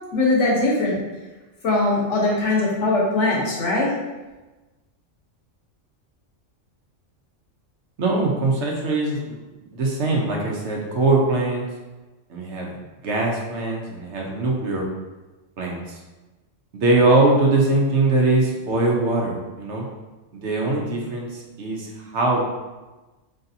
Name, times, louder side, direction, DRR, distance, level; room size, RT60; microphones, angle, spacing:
voice 1, 0.1-1.0 1.6-3.9, left 2 dB, 70° left, -4 dB, 1.3 m, -21 dB
voice 2, 8.0-9.4 9.7-11.6 12.3-12.7 13.0-14.8 15.6-15.8 16.7-19.8 20.3-22.4, right 2 dB, 65° right, -1 dB, 1.0 m, -21 dB
4.0 x 3.3 x 2.6 m, 1.2 s
omnidirectional pair, 1.3 m